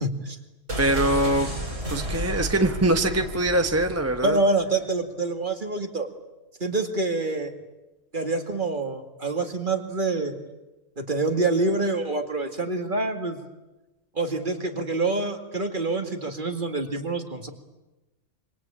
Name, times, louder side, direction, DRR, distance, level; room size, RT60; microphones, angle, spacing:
voice 1, 0.0-0.4 4.2-6.1 6.6-7.5 8.1-10.3 11.0-13.4 14.2-17.5, right 2 dB, 40° right, 6 dB, 2.3 m, -26 dB
sound 1, 0.7-4.5 4.7-4.8, right 1 dB, 85° right, 6.9 m, -32 dB
voice 2, 0.8-1.5 1.9-4.4, right 1 dB, 10° right, 6 dB, 1.1 m, -23 dB
26.5 x 25.0 x 8.7 m, 1.1 s
omnidirectional pair, 1.3 m